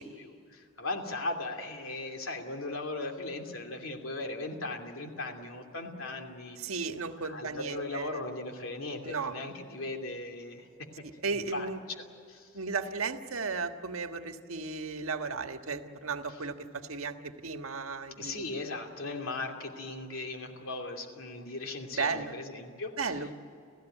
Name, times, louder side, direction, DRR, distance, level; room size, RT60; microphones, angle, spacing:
voice 1, 0.0-6.6 7.2-10.7 11.0-11.1 11.3-12.0 12.3-12.5 16.3-16.4 18.2-23.3, left 2 dB, 80° left, 3 dB, 2.8 m, -38 dB
voice 2, 6.6-8.1 9.0-9.3 11.2-11.8 12.5-16.6 16.9-18.4 21.9-22.3 23.0-23.3, right 4 dB, 90° right, 6 dB, 1.5 m, -34 dB
30.0 x 15.5 x 9.2 m, 2.5 s
head